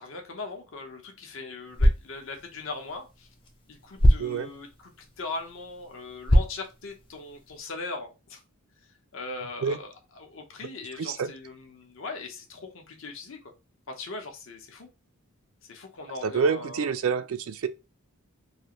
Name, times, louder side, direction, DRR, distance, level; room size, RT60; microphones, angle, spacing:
voice 1, 0.0-3.3 3.7-8.4 9.1-13.5 13.9-14.9 15.7-16.9, left 3 dB, 60° left, 0.8 m, -39 dB
sound 1, 1.6-7.6, equal, 25° left, 0.5 m, -27 dB
voice 2, 4.2-4.5 9.6-9.8 11.0-11.3 16.2-17.7, right 5 dB, 70° right, 0.4 m, -27 dB
3.3 x 2.5 x 2.9 m
head